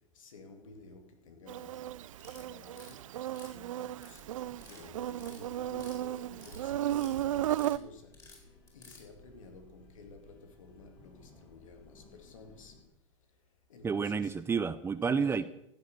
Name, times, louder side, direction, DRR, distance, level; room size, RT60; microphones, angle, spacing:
voice 1, 0.0-12.8 13.7-14.4 15.0-15.4, left 4 dB, 80° left, 2.6 m, -53 dB
Insect, 1.5-7.8, right 13 dB, 80° right, 0.5 m, -35 dB
sound 1, 2.1-2.9 3.3-4.2 4.5-4.8 5.1-6.0 6.2-7.2 7.4-7.8 8.1-9.0, left 4 dB, 20° left, 4.7 m, -54 dB
sound 2, 4.1-12.8, left 2 dB, 35° left, 4.8 m, -59 dB
voice 2, 13.8-15.5, right 5 dB, 15° right, 0.6 m, -30 dB
15.5 x 8.0 x 6.7 m
hypercardioid pair, 115°, 17 cm